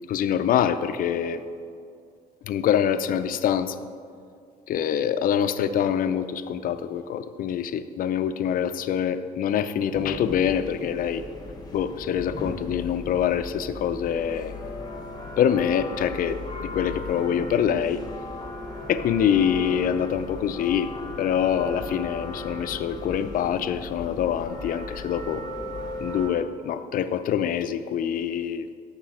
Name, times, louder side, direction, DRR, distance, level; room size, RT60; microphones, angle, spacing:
voice 1, 0.1-1.4 2.4-3.8 4.7-11.2 11.7-14.5 15.4-18.0 18.9-20.9 21.2-25.4 26.0-28.7, left 9 dB, 55° left, 11 dB, 0.5 m, -25 dB
sound 1, 9.9-26.3, left 2 dB, 25° left, 1.1 m, -37 dB
10.0 x 6.8 x 5.0 m, 2.3 s
cardioid pair, 110°, 17 cm